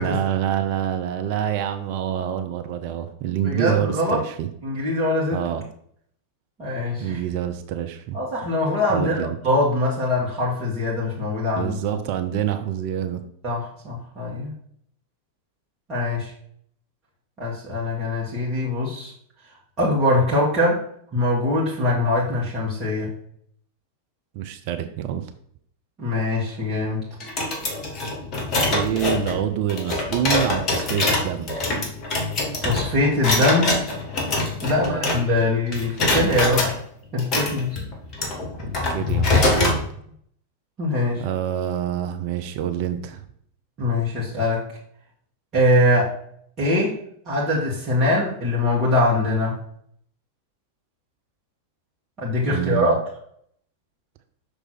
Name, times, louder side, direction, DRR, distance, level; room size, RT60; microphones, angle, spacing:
voice 1, 0.0-4.5 5.3-5.6 7.0-8.2 8.9-9.4 11.5-13.2 24.3-25.3 28.7-31.5 34.7-35.1 38.6-39.8 41.2-43.2 52.5-53.0, right 10 dB, 45° right, 7 dB, 0.5 m, -26 dB
voice 2, 3.4-4.2 4.6-5.4 6.6-7.2 8.1-11.7 13.4-14.5 15.9-16.3 17.4-19.1 19.8-20.9 21.1-23.1 26.0-27.0 32.6-33.9 34.6-36.8 37.1-37.8 39.7-39.8 40.8-41.2 43.8-44.7 45.5-46.2 46.6-46.9 47.3-49.6 52.2-52.9, left 1 dB, 30° right, -7 dB, 1.9 m, -22 dB
sound 1, 27.2-35.5 35.7-36.7 37.2-39.8, left 2 dB, 30° left, 1.9 m, -24 dB
6.1 x 3.3 x 5.9 m, 0.66 s
figure-of-eight pair, 90°, 0 cm